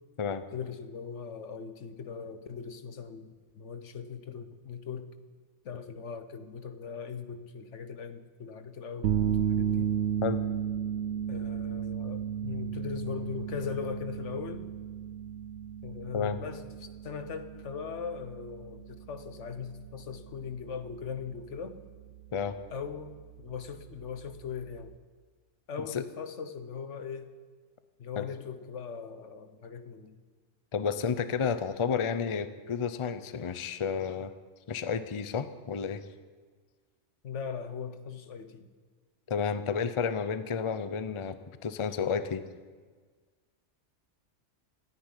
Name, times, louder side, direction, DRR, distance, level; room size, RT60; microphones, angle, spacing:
voice 1, 0.5-5.1 5.6-9.9 11.3-14.7 15.8-21.8 22.7-24.9 25.7-27.3 28.0-30.2 37.2-38.7, left 6 dB, 80° left, 9 dB, 1.3 m, -40 dB
sound 1, 9.0-25.0, right 9 dB, 75° right, 0.9 m, -35 dB
voice 2, 30.7-34.3 34.7-36.1 39.3-41.4 41.6-42.4, left 6 dB, 35° left, 12 dB, 0.6 m, -31 dB
14.0 x 9.4 x 9.8 m, 1.5 s
omnidirectional pair, 1.2 m